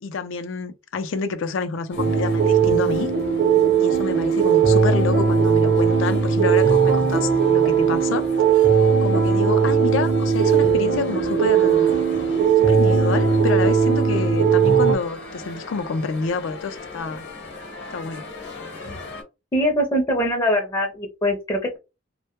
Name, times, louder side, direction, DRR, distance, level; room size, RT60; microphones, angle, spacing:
voice 1, 0.0-3.1 3.8-8.2 9.0-11.9 12.6-17.3 17.9-18.3, left 4 dB, 80° left, 0.4 m, -28 dB
sound 1, 1.9-19.2, left 3 dB, 60° left, 0.9 m, -37 dB
sound 2, 2.0-15.0, right 6 dB, 65° right, 0.7 m, -18 dB
voice 2, 19.5-21.8, equal, 20° left, 0.5 m, -22 dB
2.1 x 2.1 x 2.9 m
head